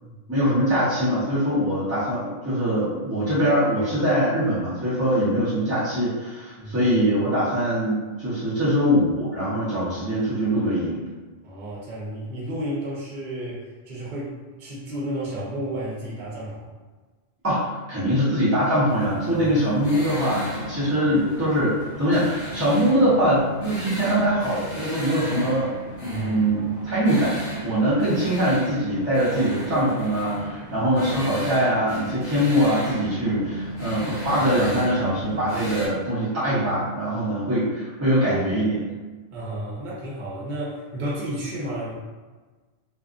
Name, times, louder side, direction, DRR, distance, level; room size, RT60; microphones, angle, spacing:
voice 1, 0.3-11.0 17.4-25.7 26.0-27.4 27.6-38.9, equal, 15° right, -12 dB, 0.7 m, -23 dB
voice 2, 6.6-7.0 11.4-16.7 19.2-19.5 26.0-26.6 30.8-31.1 39.3-42.0, right 1 dB, 55° right, -6 dB, 0.8 m, -32 dB
sound 1, 18.9-35.9, equal, 45° left, 0.8 m, -35 dB
2.5 x 2.4 x 2.4 m, 1.3 s
omnidirectional pair, 1.1 m